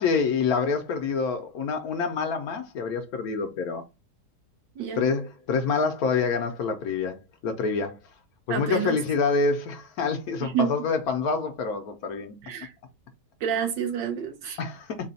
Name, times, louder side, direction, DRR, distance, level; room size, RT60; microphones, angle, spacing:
voice 1, 0.0-3.8 5.0-8.0 8.5-12.4 14.6-15.1, left 5 dB, 65° left, 1.0 m, -27 dB
voice 2, 8.5-9.0 10.4-10.7 12.4-12.7 13.4-14.6, right 7 dB, 85° right, 1.6 m, -28 dB
4.0 x 2.3 x 4.0 m
omnidirectional pair, 1.9 m